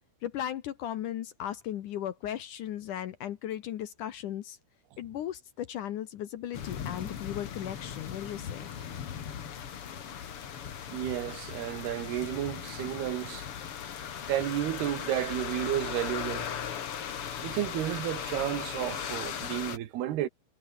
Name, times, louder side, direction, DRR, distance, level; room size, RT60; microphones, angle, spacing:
voice 1, 0.2-4.6 5.0-8.7, left 11 dB, 65° left, 2.3 m, -36 dB
sound 1, 6.5-19.8, left 8 dB, 50° left, 1.9 m, -38 dB
voice 2, 10.9-13.5 14.3-16.5 17.4-20.3, right 12 dB, 80° right, 3.5 m, -32 dB
omnidirectional pair, 4.6 m